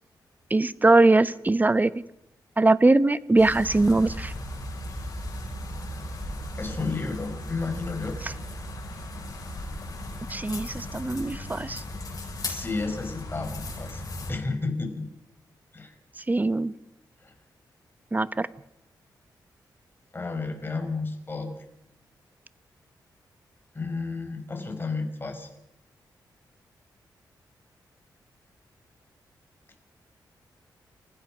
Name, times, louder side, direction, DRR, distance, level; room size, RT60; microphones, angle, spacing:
voice 1, 0.5-1.9 2.6-4.3 10.3-11.8 16.3-16.7 18.1-18.5, right 2 dB, 20° right, 15 dB, 0.9 m, -21 dB
sound 1, 3.4-14.3, left 1 dB, 50° left, 7.9 m, -36 dB
voice 2, 6.6-8.2 12.1-14.0 14.3-15.1 15.7-16.0 17.2-17.3 20.1-21.5 23.7-25.5, left 3 dB, 30° left, 5 dB, 5.0 m, -32 dB
29.0 x 15.5 x 6.1 m, 0.90 s
cardioid pair, 75°, 8 cm